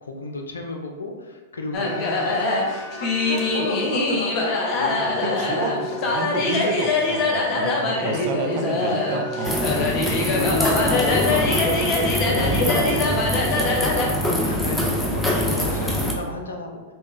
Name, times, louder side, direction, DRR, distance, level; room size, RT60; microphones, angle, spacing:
voice 1, 0.0-2.7 3.0-6.6 8.0-8.7 10.3-13.8 14.5-16.8, left 2 dB, 80° left, 4 dB, 0.5 m, -33 dB
sound 1, 1.7-14.1, left 3 dB, 40° left, 0.7 m, -24 dB
voice 2, 5.2-5.7 6.1-9.6, right 3 dB, 50° right, 3 dB, 0.5 m, -29 dB
sound 2, 9.4-16.1, left 1 dB, 5° left, 0.6 m, -23 dB
4.3 x 2.2 x 3.1 m, 1.3 s
figure-of-eight pair, 100°, 0 cm